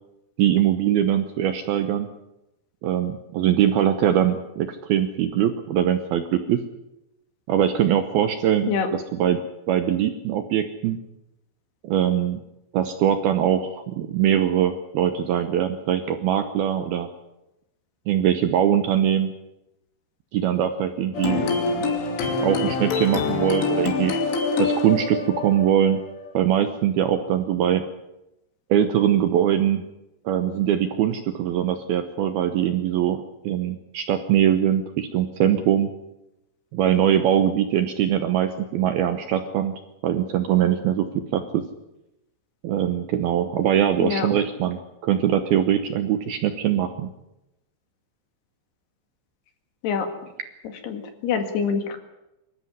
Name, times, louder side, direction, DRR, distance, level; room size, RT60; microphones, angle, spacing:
voice 1, 0.4-2.1 2.8-6.6 7.5-9.4 9.7-11.0 11.8-12.4 12.7-17.1 18.1-19.3 20.3-21.9 22.4-24.1 24.6-26.0 26.3-27.8 28.7-29.8 30.3-35.9 36.7-41.6 42.6-47.1, right 10 dB, 75° right, 8 dB, 2.4 m, -22 dB
sound 1, 21.1-26.7, left 4 dB, 90° left, 5.4 m, -25 dB
voice 2, 50.8-52.0, left 6 dB, 65° left, 7 dB, 3.8 m, -25 dB
25.0 x 13.5 x 9.6 m, 0.90 s
omnidirectional pair, 5.4 m